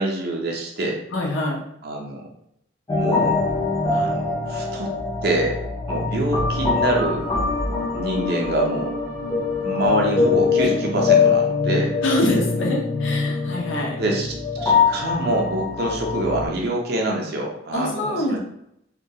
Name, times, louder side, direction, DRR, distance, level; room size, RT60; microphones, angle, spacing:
voice 1, 0.0-1.0 1.8-2.2 3.0-3.4 3.9-4.9 5.2-5.6 5.9-7.2 7.9-9.0 9.6-12.0 14.0-18.4, right 1 dB, 50° right, 0 dB, 0.5 m, -25 dB
voice 2, 1.1-1.6 12.0-14.0 17.7-18.4, left 1 dB, 70° left, 0 dB, 0.5 m, -24 dB
sound 1, 2.9-16.5, left 5 dB, 15° left, 0.3 m, -23 dB
2.3 x 2.2 x 2.7 m, 0.76 s
head